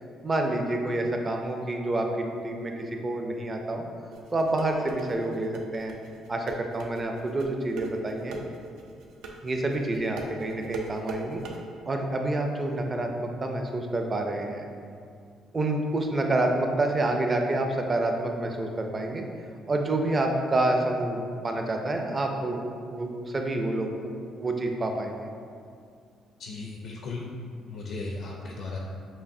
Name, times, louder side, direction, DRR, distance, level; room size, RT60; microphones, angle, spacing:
voice 1, 0.2-2.7 3.0-3.9 4.3-5.9 6.3-8.4 9.4-11.4 11.9-14.7 15.5-19.2 19.7-22.6 22.9-23.9 24.3-25.3, right 2 dB, 25° right, 3 dB, 0.4 m, -28 dB
sound 1, 4.1-11.6, right 4 dB, 90° right, 0.5 m, -38 dB
voice 2, 26.4-27.2 27.7-28.8, left 3 dB, 70° left, -1 dB, 0.5 m, -36 dB
7.1 x 2.6 x 2.6 m, 2.3 s
cardioid pair, 125°, 0 cm